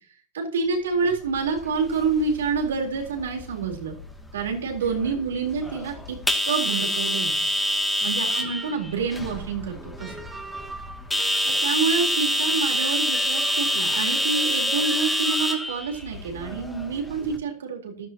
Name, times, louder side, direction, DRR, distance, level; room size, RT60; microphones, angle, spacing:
voice 1, 0.3-4.0 4.3-6.2 6.4-7.5 8.0-10.1 11.4-18.1, right 5 dB, 85° right, 2 dB, 4.0 m, -27 dB
sound 1, 1.2-17.4, left 1 dB, 5° left, 2.5 m, -27 dB
sound 2, 8.3-9.0 10.0-11.8 12.8-16.0, right 3 dB, 10° right, 1.7 m, -41 dB
14.5 x 12.5 x 3.0 m, 0.43 s
hypercardioid pair, 115°, 0 cm